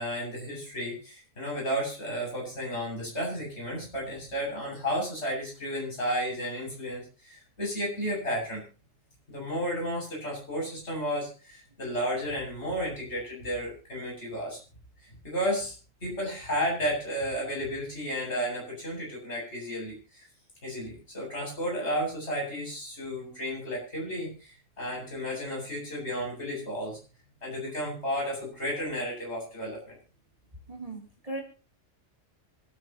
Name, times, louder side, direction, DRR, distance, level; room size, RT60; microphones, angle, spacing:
voice 1, 0.0-8.6 9.3-14.6 15.2-20.3 20.6-27.0 27.4-30.0, equal, 55° left, -2 dB, 8.4 m, -33 dB
voice 2, 30.7-31.4, right 2 dB, 25° right, 1 dB, 3.7 m, -38 dB
26.0 x 9.9 x 3.1 m, 0.34 s
omnidirectional pair, 1.4 m